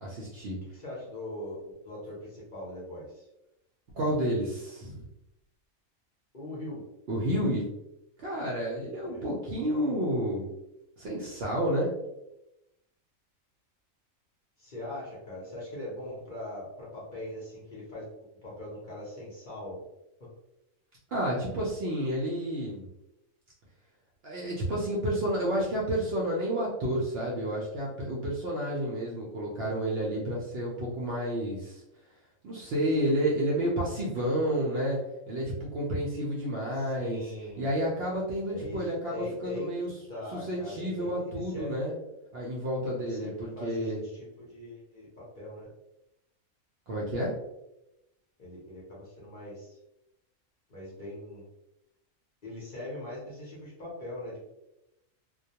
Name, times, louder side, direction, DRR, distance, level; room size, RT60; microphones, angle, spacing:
voice 1, 0.0-0.6 3.9-5.0 7.1-7.7 8.2-10.5 11.0-11.9 21.1-22.9 24.2-31.8 32.4-35.0 35.3-37.3 37.6-39.9 40.3-41.9 42.3-44.0 46.9-47.3, right 1 dB, 60° right, -4 dB, 0.7 m, -30 dB
voice 2, 0.6-3.3 6.3-6.8 9.0-9.2 14.6-19.8 36.7-37.8 38.5-39.7 40.1-41.8 43.0-45.7 48.4-49.8 50.7-51.4 52.4-54.5, left 1 dB, 45° left, -6 dB, 0.7 m, -41 dB
2.2 x 2.2 x 2.7 m, 0.89 s
omnidirectional pair, 1.4 m